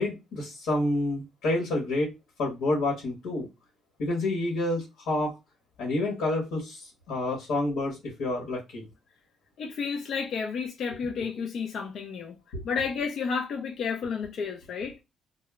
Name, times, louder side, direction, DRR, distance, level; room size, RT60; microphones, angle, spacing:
voice 1, 0.0-2.1 2.4-3.5 4.0-5.3 5.8-8.8 12.5-12.6, left 2 dB, 90° left, 1.0 m, -28 dB
voice 2, 9.6-12.4 12.6-15.0, left 5 dB, 65° left, 0.4 m, -31 dB
2.0 x 2.0 x 3.3 m
cardioid pair, 90°, 0 cm